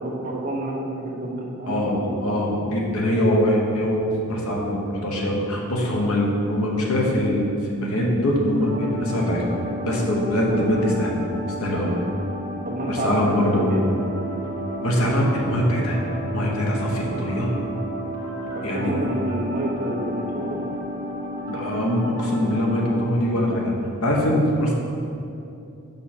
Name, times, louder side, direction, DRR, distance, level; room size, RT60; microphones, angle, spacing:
voice 1, 0.0-2.0 2.3-2.6 11.7-12.0 12.6-13.8 18.5-20.7, right 1 dB, 40° right, -4 dB, 1.1 m, -29 dB
voice 2, 2.2-9.4 9.8-11.2 11.6-11.9 12.9-13.9 14.8-16.0 16.3-17.5 18.6-19.0 21.5-23.7 24.0-24.7, equal, 80° left, -2 dB, 1.1 m, -23 dB
sound 1, 8.6-23.0, equal, 60° right, 1.0 m, -32 dB
5.8 x 5.4 x 4.4 m, 2.7 s
head